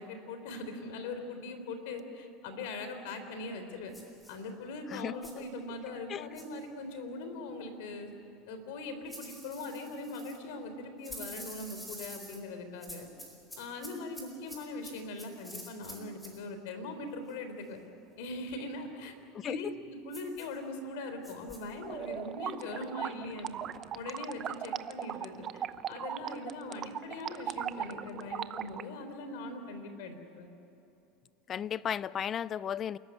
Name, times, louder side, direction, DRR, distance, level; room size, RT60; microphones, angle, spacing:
voice 1, 0.0-3.9 4.3-8.1 8.5-13.1 13.6-17.8 18.2-19.1 19.4-23.6 23.9-30.5, left 2 dB, 75° left, 8 dB, 3.8 m, -41 dB
sound 1, 3.9-4.4 5.2-5.5 6.3-6.6 9.1-10.4 11.0-12.4 12.8-16.4 20.1-20.6 21.2-21.6, equal, 5° left, 4.6 m, -48 dB
sound 2, 21.8-28.8, right 9 dB, 35° right, 0.7 m, -38 dB
voice 2, 31.5-33.0, left 9 dB, 30° left, 19 dB, 0.5 m, -34 dB
29.0 x 14.5 x 9.6 m, 2.9 s
supercardioid pair, 130°, 0 cm